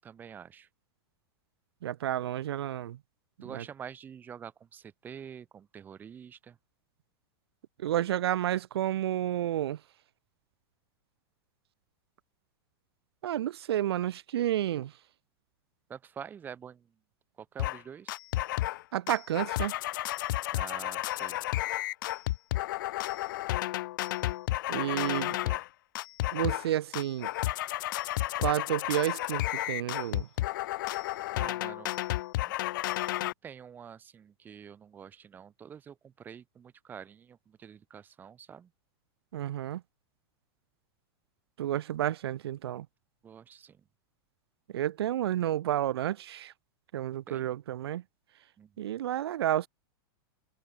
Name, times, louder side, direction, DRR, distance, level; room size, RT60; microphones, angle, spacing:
voice 1, 0.0-0.7 3.4-6.6 15.9-16.9 17.4-18.2 20.5-21.4 24.9-25.6 31.4-32.0 32.4-32.5 33.2-38.7 43.2-43.8 47.3-47.5 48.6-48.7, right 8 dB, 15° right, 7.6 m, -47 dB
voice 2, 1.8-3.0 3.5-3.6 7.8-9.8 13.2-14.9 18.9-19.7 24.7-25.3 26.3-27.3 28.4-30.3 39.3-39.8 41.6-42.9 44.7-46.5 46.9-48.0 48.8-49.7, right 12 dB, 85° right, 3.6 m, -30 dB
sound 1, 17.6-17.8 18.1-18.8 19.1-25.7 26.0-26.7 26.9-33.3, left 16 dB, 55° left, 4.3 m, -32 dB
supercardioid pair, 175°, 13 cm